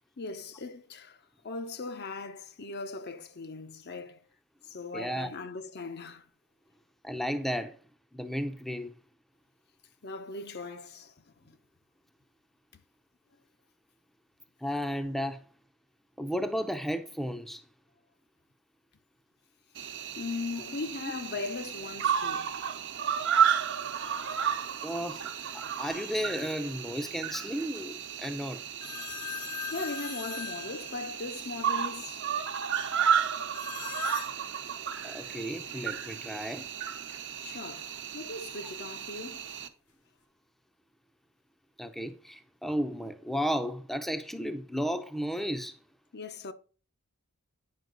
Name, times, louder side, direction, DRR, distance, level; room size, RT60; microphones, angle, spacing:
voice 1, 0.2-4.2 4.6-6.3 10.0-11.6 12.7-12.8 20.2-22.5 29.7-32.3 37.4-39.5 46.1-46.5, left 3 dB, 45° left, 0.8 m, -39 dB
voice 2, 4.9-5.3 7.0-7.8 8.1-8.9 14.6-15.4 16.2-17.6 24.8-28.6 35.0-36.7 41.8-45.8, equal, ahead, 0.6 m, -33 dB
Cricket, 19.8-39.7, right 8 dB, 55° right, 1.0 m, -33 dB
sound 1, 25.9-26.6 28.8-31.5 33.5-34.4, left 7 dB, 80° left, 2.2 m, -40 dB
9.4 x 5.7 x 3.9 m
head